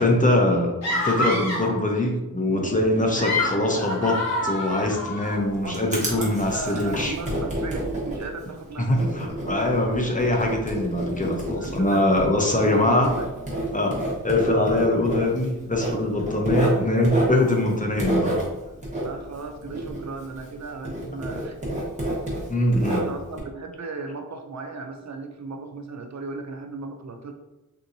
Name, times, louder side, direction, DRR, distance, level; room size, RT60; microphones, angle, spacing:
voice 1, 0.0-7.1 8.9-13.1 13.7-14.0 14.2-18.4 22.5-23.1, left 1 dB, 25° left, 1 dB, 0.7 m, -23 dB
sound 1, 0.8-1.8 3.0-5.4, left 1 dB, 50° left, 1.1 m, -27 dB
sound 2, 2.5-10.0, right 1 dB, 80° right, 1.2 m, -42 dB
Writing, 5.2-20.6 20.8-23.4, right 1 dB, 20° right, 1.3 m, -29 dB
voice 2, 5.6-8.9 11.5-13.5 19.0-21.6 22.9-27.3, right 3 dB, 55° right, 5 dB, 0.4 m, -36 dB
3.7 x 2.8 x 2.6 m, 1.0 s
wide cardioid pair, 55°, 34 cm